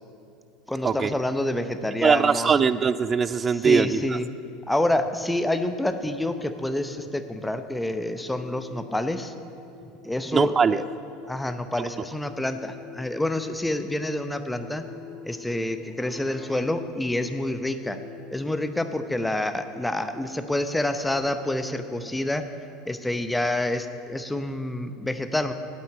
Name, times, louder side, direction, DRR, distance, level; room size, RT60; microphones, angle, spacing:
voice 1, 0.7-2.5 3.6-4.3 4.7-9.3 10.0-10.8 11.3-14.8 15.2-18.0 18.3-22.5 22.9-25.5, left 1 dB, 5° left, 9 dB, 0.7 m, -27 dB
voice 2, 2.0-4.2 10.3-10.8 11.8-11.9, right 6 dB, 30° right, 16 dB, 0.4 m, -21 dB
sound 1, 8.0-23.0, left 4 dB, 55° right, 2.9 m, -47 dB
8.4 x 8.2 x 8.8 m, 2.7 s
hypercardioid pair, 80°, 0 cm